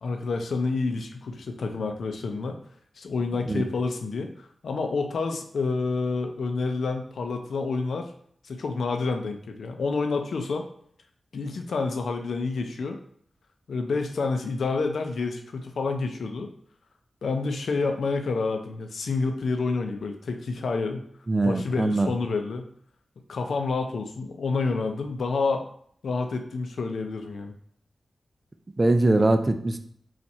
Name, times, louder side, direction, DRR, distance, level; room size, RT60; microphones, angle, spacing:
voice 1, 0.0-2.6 3.0-4.3 4.6-8.1 8.4-10.6 11.3-13.0 13.7-16.5 17.2-21.0 21.4-22.6 23.3-25.6 26.0-27.5, left 4 dB, 80° left, 5 dB, 0.5 m, -28 dB
voice 2, 21.3-22.1 28.8-29.8, right 2 dB, 40° right, 8 dB, 0.5 m, -22 dB
4.3 x 2.4 x 4.2 m, 0.62 s
cardioid pair, 40°, 0 cm